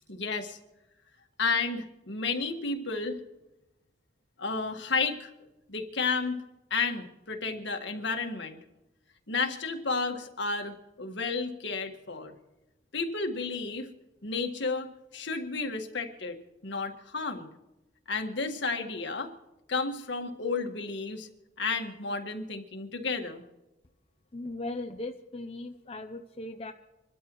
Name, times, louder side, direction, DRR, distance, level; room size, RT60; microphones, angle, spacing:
voice 1, 0.1-0.6 1.4-3.2 4.4-5.3 5.7-6.4 6.7-8.6 9.3-12.3 12.9-13.9 14.2-17.5 18.1-19.3 19.7-21.3 21.6-23.4, left 4 dB, 70° left, 4 dB, 1.7 m, -32 dB
voice 2, 24.3-26.7, left 2 dB, 30° left, 4 dB, 0.7 m, -38 dB
26.5 x 13.0 x 3.1 m, 0.98 s
head